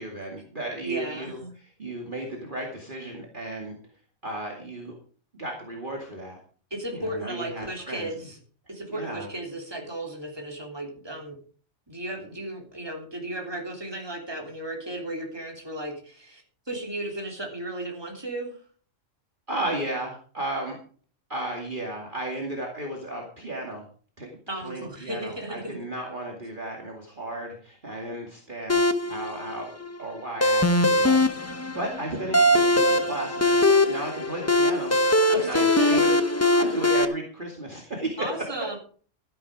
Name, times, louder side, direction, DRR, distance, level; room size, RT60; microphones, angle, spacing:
voice 1, 0.0-3.8 4.2-4.9 5.4-6.4 6.9-8.1 8.9-9.3 19.5-20.8 21.3-23.8 24.2-34.9 35.3-36.1 36.6-38.3, right 1 dB, 35° right, 0 dB, 2.5 m, -34 dB
voice 2, 0.8-1.5 6.7-8.4 8.7-11.4 11.9-16.4 16.7-18.6 24.5-25.8 35.3-36.1 38.2-38.8, right 1 dB, 15° right, 1 dB, 3.2 m, -34 dB
sound 1, 28.7-37.0, left 1 dB, 15° left, 0.8 m, -21 dB
13.0 x 10.5 x 4.9 m, 0.43 s
omnidirectional pair, 1.4 m